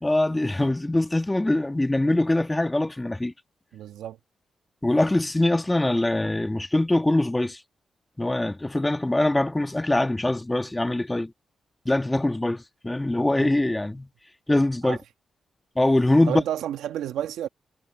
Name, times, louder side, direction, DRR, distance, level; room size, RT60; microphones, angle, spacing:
voice 1, 0.0-3.3 4.8-7.6 8.2-11.3 11.9-14.1 14.5-15.0 15.8-16.4, left 1 dB, 15° left, 2.0 m, -23 dB
voice 2, 3.7-4.2 13.4-13.5 14.8-15.0 16.3-17.5, right 11 dB, 85° right, 1.6 m, -31 dB
supercardioid pair, 50°, 0 cm